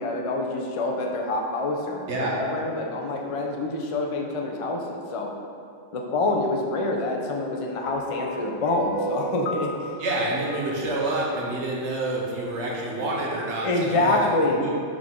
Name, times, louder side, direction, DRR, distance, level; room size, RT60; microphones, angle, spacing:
voice 1, 0.0-5.3 5.9-9.9 13.6-14.6, left 2 dB, 50° left, 1 dB, 0.4 m, -26 dB
sound 1, 7.8-12.2, right 1 dB, 80° left, 1.0 m, -35 dB
voice 2, 10.0-14.3 14.6-14.7, right 2 dB, 65° right, -3 dB, 1.1 m, -28 dB
6.0 x 4.9 x 3.7 m, 2.4 s
omnidirectional pair, 1.3 m